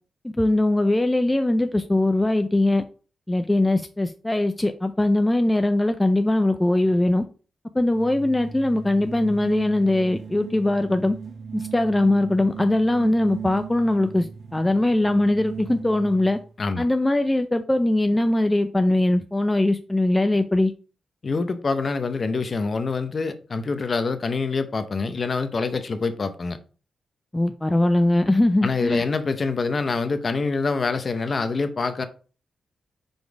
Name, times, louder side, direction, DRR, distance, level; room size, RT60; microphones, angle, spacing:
voice 1, 0.2-2.8 3.3-7.3 7.7-11.2 11.5-16.4 16.8-20.7 27.3-29.1, left 1 dB, 10° left, 0.4 m, -21 dB
sound 1, 7.9-16.5, right 6 dB, 50° right, 0.7 m, -38 dB
voice 2, 21.2-26.6 28.6-32.1, left 4 dB, 40° left, 0.7 m, -25 dB
5.2 x 4.1 x 4.7 m
wide cardioid pair, 115°, 0 cm